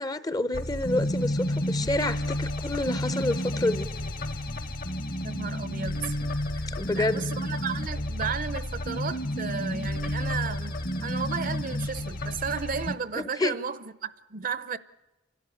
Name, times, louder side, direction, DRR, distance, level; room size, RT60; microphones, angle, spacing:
voice 1, 0.0-3.9 6.8-7.3 13.2-13.6, left 2 dB, 20° left, 0.6 m, -28 dB
sound 1, 0.5-13.0, left 1 dB, 50° left, 1.2 m, -31 dB
voice 2, 5.2-6.1 6.5-6.7 6.9-14.8, right 6 dB, 45° right, 0.7 m, -34 dB
28.5 x 12.5 x 9.1 m
head